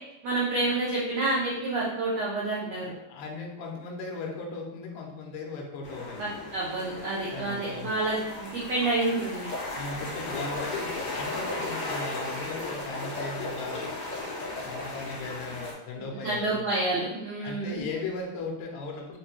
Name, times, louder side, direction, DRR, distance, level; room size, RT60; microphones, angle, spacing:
voice 1, 0.2-2.9 6.2-9.5 16.0-17.8, right 2 dB, 85° right, -6 dB, 1.5 m, -29 dB
voice 2, 2.7-6.3 7.3-8.0 9.7-13.9 14.2-16.6 17.4-19.2, left 3 dB, 75° left, 0 dB, 1.8 m, -38 dB
sound 1, 5.8-15.7, left 2 dB, 60° left, 2.2 m, -35 dB
5.3 x 2.2 x 3.0 m, 0.92 s
omnidirectional pair, 4.0 m